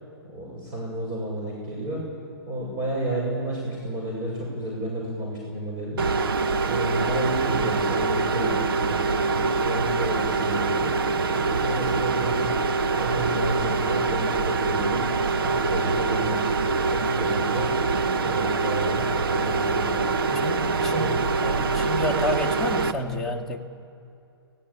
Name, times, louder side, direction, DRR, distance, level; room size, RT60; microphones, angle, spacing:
voice 1, 0.3-2.0 2.5-6.1 6.7-10.9 11.4-12.5 13.0-15.0 15.4-16.4 16.9-17.7 18.1-20.4 20.9-21.2, right 1 dB, 30° right, -3 dB, 6.6 m, -31 dB
sound 1, 6.0-22.9, right 4 dB, 60° right, 1.6 m, -24 dB
voice 2, 20.4-23.7, left 1 dB, ahead, -4 dB, 2.2 m, -30 dB
29.5 x 18.0 x 8.7 m, 2.6 s
figure-of-eight pair, 120°, 14 cm